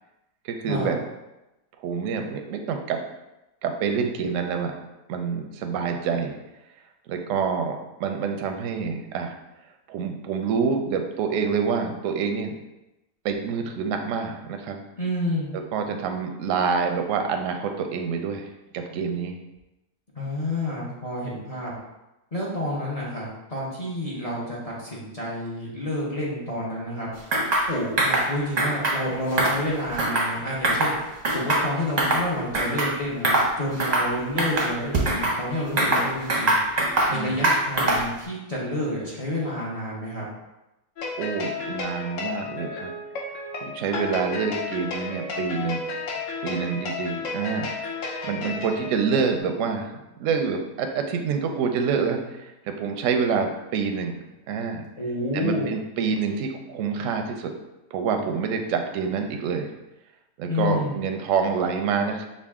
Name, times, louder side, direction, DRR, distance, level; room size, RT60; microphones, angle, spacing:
voice 1, 0.4-1.0 1.8-3.0 3.6-4.7 5.1-6.4 7.1-9.3 9.9-12.5 13.2-14.8 15.7-19.4 35.8-36.1 37.1-37.4 41.1-42.9 43.6-45.8 46.4-47.7 48.2-52.5 52.8-54.8 55.3-57.5 57.9-59.7 60.4-62.3, right 5 dB, 70° right, 4 dB, 0.8 m, -27 dB
voice 2, 15.0-15.5 20.1-21.7 22.3-27.1 27.7-36.5 37.1-40.3 55.0-55.6 60.5-60.9, left 1 dB, 35° left, -5 dB, 0.6 m, -29 dB
sound 1, 27.3-27.7 28.0-28.3 28.6-29.0 29.3-30.3 30.6-30.9 31.2-32.2 32.5-32.9 33.2-33.5 33.8-34.1 34.4-35.4 35.8-37.1 37.4-38.1, right 2 dB, 40° right, 0.6 m, -22 dB
sound 2, 41.0-49.4, left 3 dB, 60° left, 1.0 m, -33 dB
5.3 x 2.4 x 3.5 m, 0.96 s
omnidirectional pair, 1.7 m